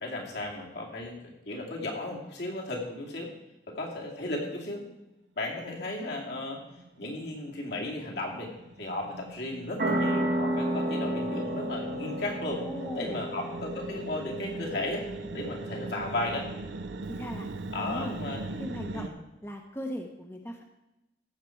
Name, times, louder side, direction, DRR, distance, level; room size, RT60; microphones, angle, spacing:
voice 1, 0.0-3.3 3.7-4.8 5.4-6.6 7.0-8.5 8.8-12.6 12.9-15.0 15.3-16.5 17.7-18.6 18.9-19.1, left 2 dB, 65° left, -2 dB, 2.6 m, -35 dB
sound 1, 5.8-6.0 6.3-19.1, right 3 dB, 75° right, 0.6 m, -41 dB
sound 2, 9.8-17.0, right 1 dB, 55° right, 1.3 m, -33 dB
voice 2, 12.5-13.3 17.1-17.5 17.8-18.2 18.6-19.1 19.4-20.6, equal, 15° left, 2 dB, 0.9 m, -38 dB
14.5 x 7.4 x 4.5 m, 0.94 s
head